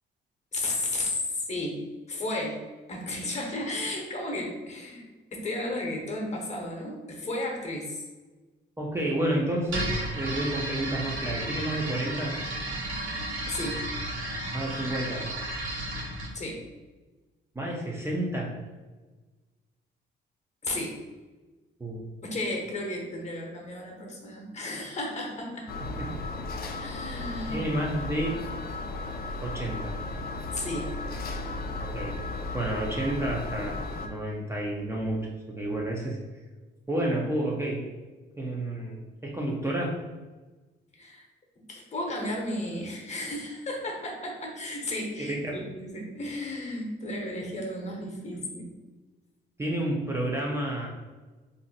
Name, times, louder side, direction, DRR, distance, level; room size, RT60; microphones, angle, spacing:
voice 1, 0.5-1.8 2.1-2.6 2.9-5.0 5.3-8.1 13.5-13.9 16.3-16.6 20.6-21.0 22.2-26.0 26.6-27.6 30.5-31.0 41.0-41.3 41.7-48.7, left 1 dB, 35° left, 0 dB, 0.9 m, -33 dB
voice 2, 8.8-12.4 14.5-15.3 17.6-18.5 21.8-22.0 26.0-26.2 27.5-28.4 29.4-30.0 31.8-32.2 32.5-36.2 36.9-37.8 38.4-40.0 45.2-45.6 49.6-50.9, right 1 dB, 15° right, -3 dB, 0.5 m, -30 dB
sound 1, 9.7-16.3, right 1 dB, 80° right, 1.1 m, -33 dB
sound 2, 25.7-34.1, left 2 dB, 50° left, 0.4 m, -35 dB
2.6 x 2.0 x 3.9 m, 1.3 s
cardioid pair, 90°, 20 cm